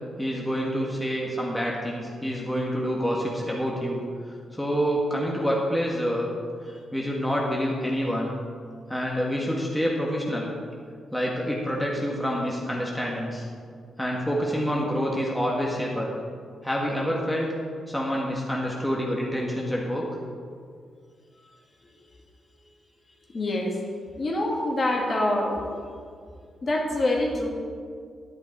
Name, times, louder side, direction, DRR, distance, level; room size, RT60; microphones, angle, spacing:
voice 1, 0.2-4.0 4.5-6.3 6.9-8.3 8.9-10.5 11.1-13.4 14.0-16.1 16.6-17.5 17.9-20.1, equal, 5° left, -3 dB, 1.5 m, -27 dB
voice 2, 23.3-23.8 24.2-25.7 26.6-27.5, left 1 dB, 35° left, 0 dB, 1.9 m, -25 dB
11.0 x 10.5 x 4.6 m, 2.2 s
cardioid pair, 130°, 0 cm